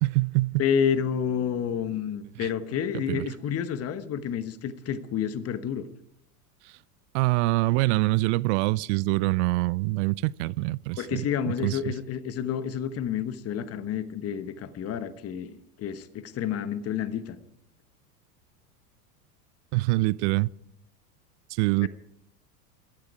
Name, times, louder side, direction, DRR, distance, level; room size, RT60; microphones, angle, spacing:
voice 1, 0.0-0.6 2.4-2.5 2.9-3.3 7.1-11.9 19.7-20.5 21.5-21.9, right 21 dB, 50° right, 0.5 m, -25 dB
voice 2, 0.6-5.9 11.0-15.5 15.8-17.4 21.8-21.9, left 8 dB, 30° left, 1.2 m, -29 dB
16.5 x 13.0 x 4.8 m
hypercardioid pair, 95°, 46 cm